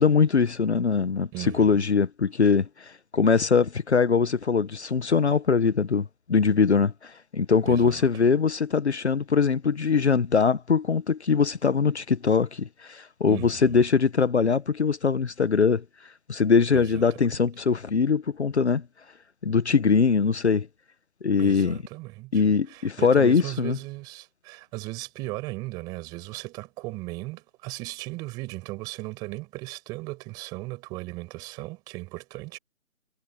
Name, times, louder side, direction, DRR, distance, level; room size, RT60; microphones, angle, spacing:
voice 1, 0.0-15.8 16.3-18.8 19.4-20.7 21.2-21.8 22.3-23.8, left 5 dB, 55° left, 1.3 m, -22 dB
voice 2, 1.3-1.8 7.6-8.1 13.3-13.9 16.7-17.2 21.4-32.6, right 22 dB, 10° right, 6.7 m, -37 dB
hypercardioid pair, 175°, 41 cm